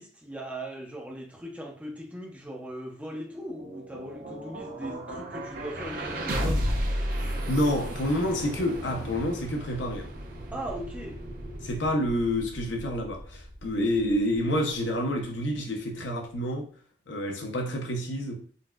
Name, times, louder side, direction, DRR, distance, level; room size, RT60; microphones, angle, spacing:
voice 1, 0.0-6.7 10.5-11.2, right 1 dB, 10° right, 0.6 m, -39 dB
sound 1, 3.3-15.4, equal, 50° right, 0.6 m, -34 dB
voice 2, 7.1-10.1 11.6-16.7 17.1-18.5, left 1 dB, 80° left, 0.7 m, -28 dB
3.9 x 2.3 x 2.2 m
head